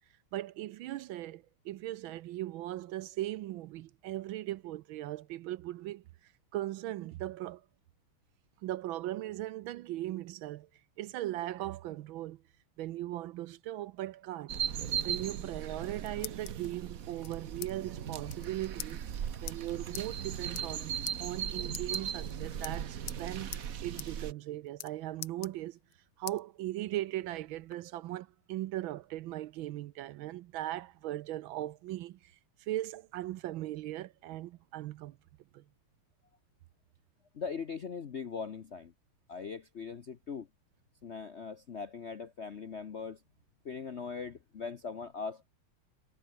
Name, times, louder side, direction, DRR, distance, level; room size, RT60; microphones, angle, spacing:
voice 1, 0.3-7.6 8.6-10.7 11.0-12.4 12.8-14.6 15.0-19.1 19.4-23.6 23.8-25.8 26.2-32.3 32.6-35.2 35.5-35.6, right 15 dB, 75° right, 1.3 m, -38 dB
sound 1, 14.5-24.3, right 8 dB, 50° right, 1.3 m, -38 dB
sound 2, 15.6-16.7 17.2-17.7 18.0-18.1 18.3-18.5 18.8-18.9 19.5-19.6 19.9-20.1 20.4-20.8 21.1-21.2 21.7-22.3 22.6-23.2 23.5-23.7 24.0-24.1 24.4-24.9 25.2-25.9 26.3-26.4 26.9-27.8, left 14 dB, 75° left, 1.7 m, -43 dB
voice 2, 37.3-38.9 39.3-40.5 41.0-43.2 43.6-45.5, left 5 dB, 55° left, 0.7 m, -40 dB
omnidirectional pair, 2.4 m